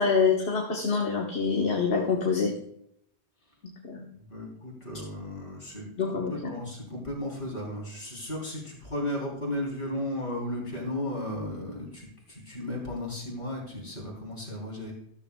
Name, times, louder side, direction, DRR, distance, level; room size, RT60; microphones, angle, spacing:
voice 1, 0.0-2.5 3.8-4.0 6.0-6.5, left 5 dB, 70° left, -1 dB, 1.6 m, -26 dB
voice 2, 4.3-5.9 6.1-14.9, left 1 dB, 50° left, -2 dB, 4.0 m, -35 dB
13.5 x 13.5 x 2.3 m, 0.73 s
omnidirectional pair, 1.1 m